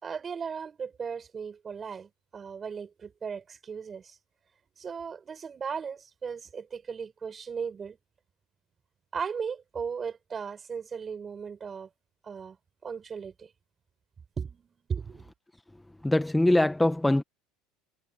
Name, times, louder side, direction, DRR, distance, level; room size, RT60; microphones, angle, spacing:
voice 1, 0.0-4.2 4.8-8.0 9.1-11.9 12.2-12.6 12.8-13.5 14.4-15.2, right 6 dB, 25° right, 5.5 m, -37 dB
voice 2, 16.0-17.2, left 1 dB, 5° left, 0.9 m, -22 dB
supercardioid pair, 125°, 0 cm